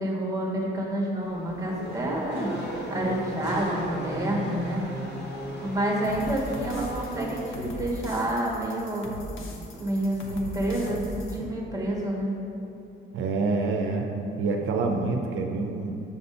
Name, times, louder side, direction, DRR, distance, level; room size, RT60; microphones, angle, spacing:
voice 1, 0.0-2.5 2.9-4.8 5.6-9.1 9.7-12.3, right 1 dB, 15° right, -2 dB, 1.1 m, -28 dB
Race car auto racing / Accelerating revving vroom, 1.2-7.9, right 1 dB, 55° left, 1.4 m, -36 dB
sound 1, 6.0-11.4, equal, 75° left, 0.8 m, -39 dB
voice 2, 13.1-14.1 14.4-16.0, right 3 dB, 80° right, 3 dB, 0.5 m, -27 dB
7.3 x 2.6 x 5.4 m, 2.8 s
cardioid pair, 120°, 20 cm